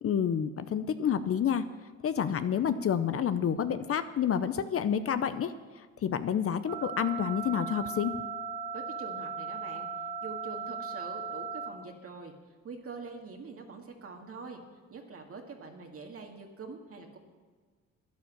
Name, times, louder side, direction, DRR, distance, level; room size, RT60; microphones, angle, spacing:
voice 1, 0.0-1.6 2.0-5.5 5.8-8.1, left 8 dB, 50° left, 11 dB, 0.7 m, -29 dB
sound 1, 6.7-11.7, right 5 dB, 80° right, 1.8 m, -37 dB
voice 2, 8.7-9.9 10.2-12.3 12.6-14.6 14.9-17.2, right 4 dB, 50° right, 2 dB, 1.9 m, -44 dB
11.5 x 10.5 x 7.4 m, 1.5 s
cardioid pair, 90°, 30 cm